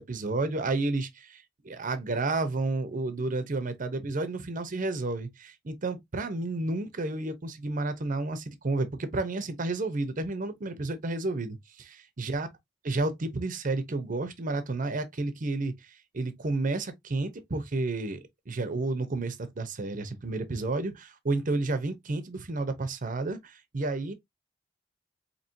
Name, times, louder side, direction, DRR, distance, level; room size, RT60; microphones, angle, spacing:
voice 1, 0.0-12.5 12.8-18.2 18.5-24.1, right 2 dB, 45° right, 0.7 m, -31 dB
4.4 x 2.9 x 2.6 m
head